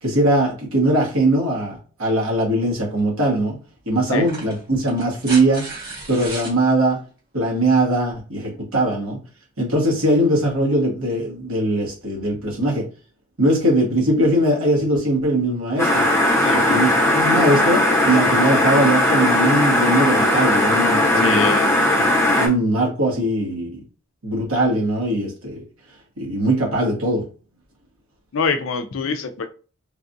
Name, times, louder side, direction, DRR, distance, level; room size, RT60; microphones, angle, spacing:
voice 1, 0.0-3.6 3.9-5.7 6.1-7.0 7.3-9.2 9.6-12.9 13.4-16.1 16.5-21.4 22.0-22.1 22.4-23.8 24.2-25.6 26.2-27.2, right 1 dB, 70° right, -2 dB, 1.4 m, -20 dB
sound 1, 3.0-3.1 4.1-6.6 8.1-8.2, right 3 dB, 45° right, 1.4 m, -34 dB
sound 2, 15.8-22.5, left 1 dB, 10° left, 0.8 m, -18 dB
voice 2, 16.4-16.8 21.2-21.7 28.3-29.5, left 5 dB, 60° left, 9 dB, 0.4 m, -25 dB
3.4 x 2.3 x 2.6 m, 0.37 s
head